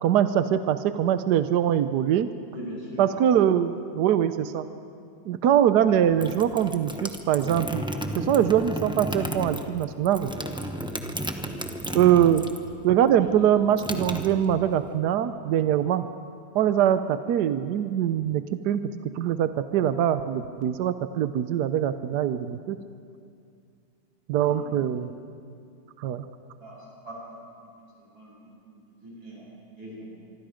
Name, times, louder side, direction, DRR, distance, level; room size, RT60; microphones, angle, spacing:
voice 1, 0.0-2.3 3.0-4.6 5.3-7.8 8.2-10.3 11.9-12.4 12.8-16.1 16.5-18.8 19.2-22.8 24.3-25.1 26.0-26.2, right 10 dB, 65° right, 11 dB, 1.2 m, -23 dB
voice 2, 2.5-3.0 13.1-13.3 24.4-25.1 26.6-26.8 27.0-27.2 28.1-28.3 29.0-29.4 29.8-30.1, equal, 85° right, -5 dB, 8.8 m, -40 dB
sound 1, 5.9-12.7 13.0-14.9, right 1 dB, 5° right, 0.6 m, -33 dB
25.5 x 24.5 x 5.1 m, 2.3 s
omnidirectional pair, 2.1 m